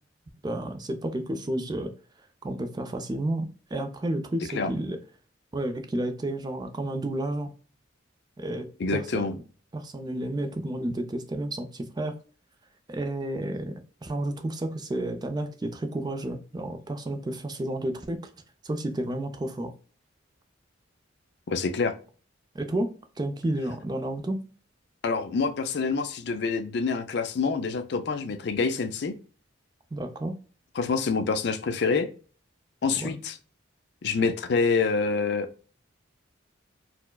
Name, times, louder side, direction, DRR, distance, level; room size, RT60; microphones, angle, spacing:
voice 1, 0.4-1.9 2.4-5.0 5.5-7.5 8.4-9.2 9.7-12.2 12.9-13.7 14.0-18.2 18.6-19.7 22.5-22.9 23.2-24.4 29.9-30.3 33.0-33.1, right 1 dB, 20° right, 7 dB, 0.4 m, -31 dB
voice 2, 8.8-9.3 21.5-21.9 25.0-29.1 30.8-32.1 32.8-33.4 34.0-35.5, left 4 dB, 55° left, 9 dB, 0.4 m, -26 dB
4.4 x 2.1 x 2.2 m, 0.38 s
head